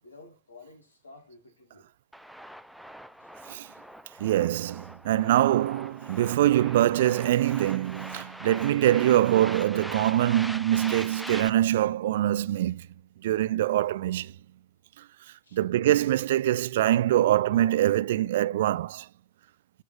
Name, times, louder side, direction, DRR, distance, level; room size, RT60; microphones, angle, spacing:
voice 1, 0.0-1.9 3.2-3.3 15.4-15.6, left 3 dB, 70° left, 2.3 m, -52 dB
sound 1, 2.1-11.5, equal, ahead, 0.5 m, -42 dB
voice 2, 4.2-12.9 13.2-14.3 15.0-15.1 15.5-19.1, right 13 dB, 55° right, 0.4 m, -24 dB
14.0 x 5.2 x 2.4 m
figure-of-eight pair, 90°, 0 cm